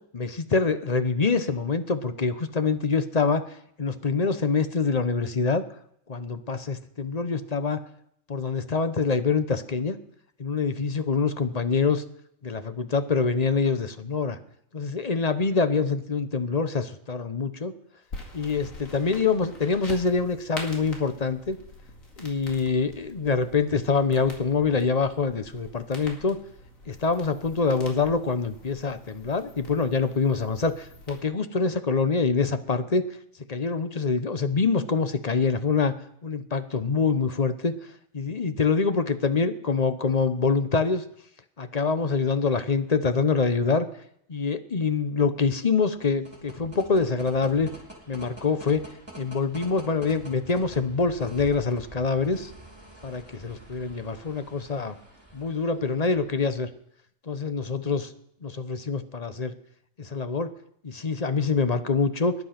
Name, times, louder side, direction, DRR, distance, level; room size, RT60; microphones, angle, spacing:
voice 1, 0.1-3.4 3.8-5.6 6.1-7.8 8.3-10.0 10.4-12.0 12.4-14.4 14.7-17.7 18.3-21.6 22.2-26.4 26.9-33.0 33.5-35.9 36.2-37.7 38.1-41.0 41.6-43.9 44.3-47.7 48.1-48.8 49.2-52.5 53.0-55.0 55.3-56.7 57.3-58.1 58.4-59.5 60.0-60.5 60.8-62.3, left 4 dB, 35° left, 10 dB, 0.9 m, -25 dB
sound 1, 18.1-31.2, left 2 dB, 80° left, 2.7 m, -45 dB
sound 2, 45.9-56.6, right 1 dB, 10° right, 4.0 m, -47 dB
20.0 x 11.0 x 5.9 m, 0.73 s
omnidirectional pair, 1.4 m